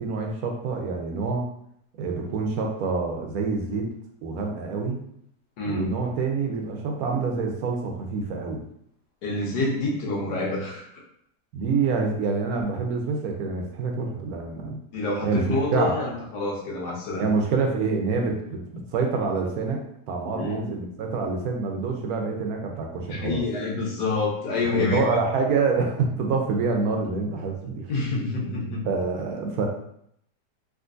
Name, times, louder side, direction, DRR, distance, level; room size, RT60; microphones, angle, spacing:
voice 1, 0.0-1.5 2.0-3.9 4.2-5.0 5.6-8.6 11.5-14.8 15.2-16.0 17.2-19.8 20.1-23.4 24.7-27.9 28.8-29.7, right 4 dB, 70° right, 2 dB, 1.1 m, -26 dB
voice 2, 5.6-5.9 9.2-10.9 14.9-17.3 20.3-20.6 23.0-25.1 27.9-28.8, left 3 dB, 80° left, -2 dB, 1.4 m, -27 dB
3.7 x 2.6 x 2.5 m, 0.72 s
omnidirectional pair, 1.8 m